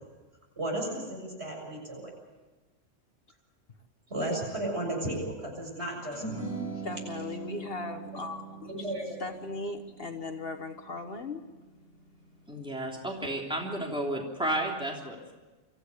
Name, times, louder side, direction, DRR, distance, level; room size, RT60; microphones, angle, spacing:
voice 1, 0.6-2.1 4.1-6.5 8.7-9.0, right 1 dB, 60° right, -1 dB, 7.3 m, -34 dB
sound 1, 6.1-12.7, right 4 dB, 85° right, 5.0 m, -42 dB
voice 2, 6.8-8.8 9.2-11.4, left 3 dB, 50° left, 6 dB, 1.5 m, -38 dB
voice 3, 12.5-15.3, right 1 dB, 5° right, -1 dB, 3.3 m, -32 dB
25.0 x 15.0 x 8.4 m, 1.2 s
omnidirectional pair, 1.3 m